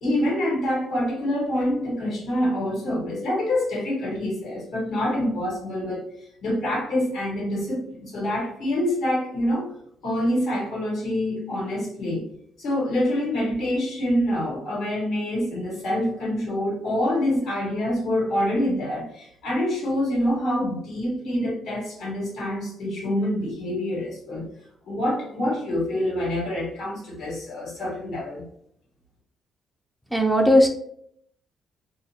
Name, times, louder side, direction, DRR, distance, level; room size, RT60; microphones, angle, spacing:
voice 1, 0.0-6.0 6.4-9.7 10.0-12.2 12.6-24.5 24.8-28.4, left 1 dB, 80° left, -3 dB, 1.2 m, -26 dB
voice 2, 30.1-30.7, equal, ahead, 1 dB, 0.4 m, -17 dB
2.3 x 2.0 x 2.8 m, 0.69 s
cardioid pair, 90°, 0 cm